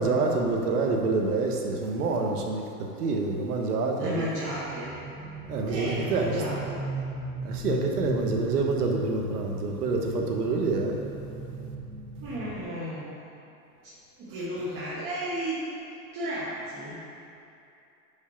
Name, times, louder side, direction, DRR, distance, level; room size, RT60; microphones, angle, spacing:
voice 1, 0.0-2.6 3.0-4.3 5.5-6.4 7.4-11.0, right 3 dB, 80° right, 1 dB, 1.2 m, -27 dB
voice 2, 3.9-4.9 5.7-6.9 12.2-13.2 13.8-13.9 14.2-15.6 16.1-17.0, equal, 30° right, -9 dB, 1.5 m, -33 dB
sound 1, 4.4-12.6, right 1 dB, 5° right, 0.4 m, -37 dB
5.6 x 4.9 x 5.6 m, 2.7 s
hypercardioid pair, 125°, 45 cm